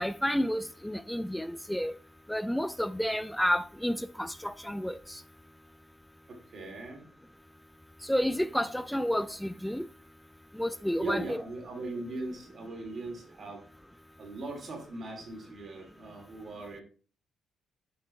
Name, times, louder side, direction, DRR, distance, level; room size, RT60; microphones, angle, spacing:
voice 1, 0.0-2.0 2.3-5.2 8.0-9.9 10.5-11.4, equal, 5° left, 0.3 m, -30 dB
voice 2, 6.3-7.0 11.0-13.6 14.2-16.8, right 2 dB, 50° right, 2.9 m, -39 dB
6.9 x 5.3 x 3.2 m
cardioid pair, 90°, 0 cm